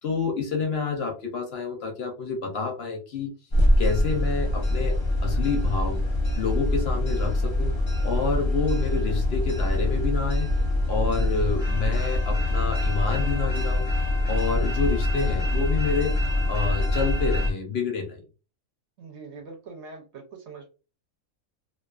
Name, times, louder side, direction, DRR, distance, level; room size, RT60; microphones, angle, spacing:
voice 1, 0.0-3.3 3.8-5.0 5.2-6.0 6.4-7.7 8.0-10.5 10.9-13.9 14.3-16.1 16.5-18.2, left 4 dB, 60° left, 2 dB, 0.7 m, -28 dB
sound 1, 3.5-17.5, left 1 dB, 45° left, 0.3 m, -24 dB
voice 2, 19.0-20.7, right 4 dB, 60° right, 3 dB, 0.9 m, -43 dB
2.4 x 2.3 x 2.3 m, 0.32 s
omnidirectional pair, 1.4 m